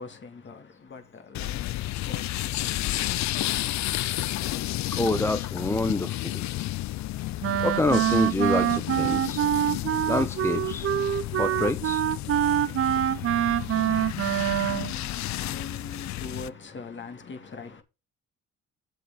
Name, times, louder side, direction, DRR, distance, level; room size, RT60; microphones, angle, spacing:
voice 1, 0.0-3.9 14.1-17.8, left 4 dB, 40° left, 2.1 m, -43 dB
sound 1, 1.3-16.5, left 15 dB, 65° left, 0.5 m, -32 dB
voice 2, 4.9-6.4 7.6-9.4 9.9-10.9 11.4-12.0 13.1-13.7, left 2 dB, 10° left, 0.5 m, -28 dB
Wind instrument woodwind instrument, 7.4-14.9, right 11 dB, 50° right, 0.5 m, -25 dB
7.9 x 7.7 x 3.8 m
cardioid pair, 90°, 30 cm